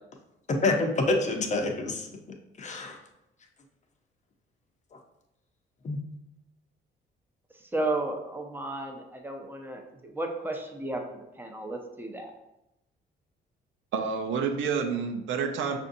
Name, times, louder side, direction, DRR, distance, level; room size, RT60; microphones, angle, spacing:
voice 1, 0.5-2.1 2.6-3.0 5.8-6.0, left 2 dB, 35° left, 3 dB, 0.7 m, -27 dB
voice 2, 7.7-12.3, right 2 dB, 10° right, 2 dB, 0.7 m, -33 dB
voice 3, 13.9-15.8, right 6 dB, 75° right, 5 dB, 0.6 m, -29 dB
5.7 x 2.6 x 2.6 m, 0.89 s
cardioid pair, 90°, 20 cm